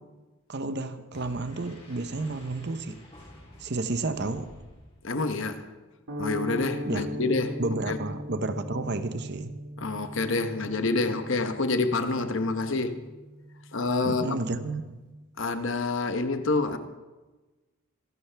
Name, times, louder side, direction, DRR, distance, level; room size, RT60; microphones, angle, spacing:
voice 1, 0.5-3.0 3.6-4.5 6.8-7.0 7.6-9.6 14.0-15.0, right 2 dB, 50° right, 0.8 m, -31 dB
sound 1, 1.1-5.4, left 1 dB, 25° left, 3.0 m, -50 dB
voice 2, 5.0-5.7 6.2-7.6 7.9-8.0 9.8-13.0 13.7-14.4 15.4-16.8, left 3 dB, 60° left, 0.9 m, -27 dB
sound 2, 6.1-14.4, equal, 85° right, 1.9 m, -39 dB
26.0 x 11.5 x 3.4 m
head